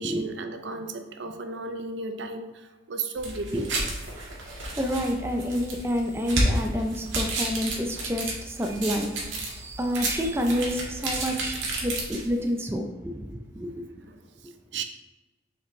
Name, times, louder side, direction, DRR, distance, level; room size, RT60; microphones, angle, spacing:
voice 1, 0.0-3.8 14.1-14.8, right 3 dB, 70° right, 7 dB, 0.5 m, -35 dB
sound 1, 3.2-12.5, right 1 dB, 90° right, 1.7 m, -31 dB
voice 2, 4.8-11.6 11.8-13.9, equal, 15° right, 3 dB, 0.5 m, -29 dB
6.6 x 5.0 x 3.2 m, 1.2 s
head